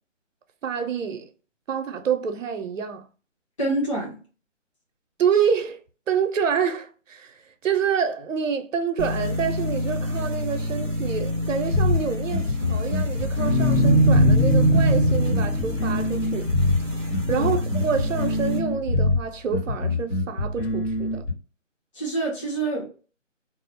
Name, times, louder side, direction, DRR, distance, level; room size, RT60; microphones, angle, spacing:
voice 1, 0.6-1.3 1.7-3.1 5.2-16.5 17.3-21.2, right 7 dB, 75° right, 0.6 m, -27 dB
voice 2, 3.6-4.2 17.3-17.5 21.9-22.9, right 2 dB, 25° left, 0.7 m, -26 dB
sound 1, 9.0-18.6, equal, 20° right, 0.5 m, -24 dB
sound 2, 11.7-21.3, left 2 dB, 70° left, 1.2 m, -25 dB
2.3 x 2.0 x 2.7 m
figure-of-eight pair, 160°, 38 cm